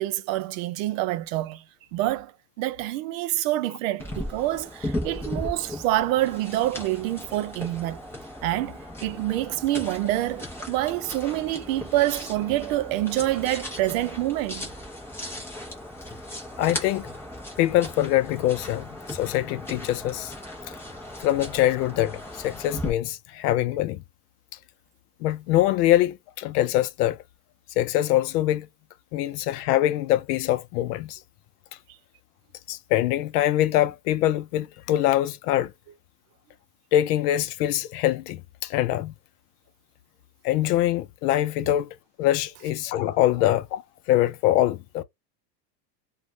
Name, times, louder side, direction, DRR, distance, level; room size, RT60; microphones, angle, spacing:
voice 1, 0.0-1.6 1.9-2.3 2.6-8.0 8.4-14.7, right 15 dB, 55° right, 0.6 m, -27 dB
sound 1, 4.0-22.9, left 1 dB, 5° left, 0.5 m, -37 dB
voice 2, 16.6-17.1 17.6-20.3 21.2-24.0 25.2-27.2 27.8-28.7 29.1-31.2 32.7-35.7 36.9-39.1 40.4-41.9 42.2-43.8 44.1-45.0, left 13 dB, 70° left, 0.6 m, -23 dB
2.5 x 2.3 x 3.0 m
supercardioid pair, 150°, 48 cm